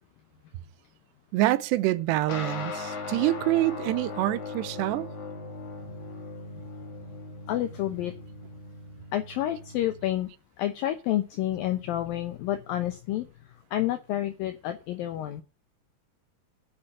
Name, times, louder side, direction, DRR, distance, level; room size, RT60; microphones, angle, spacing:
voice 1, 1.3-5.1, right 16 dB, 80° right, 2.7 m, -26 dB
sound 1, 2.3-10.1, left 3 dB, 50° left, 3.1 m, -39 dB
voice 2, 7.5-8.1 9.1-10.3 10.6-13.3 13.7-15.4, left 13 dB, 85° left, 2.0 m, -29 dB
10.0 x 5.8 x 8.6 m
omnidirectional pair, 5.3 m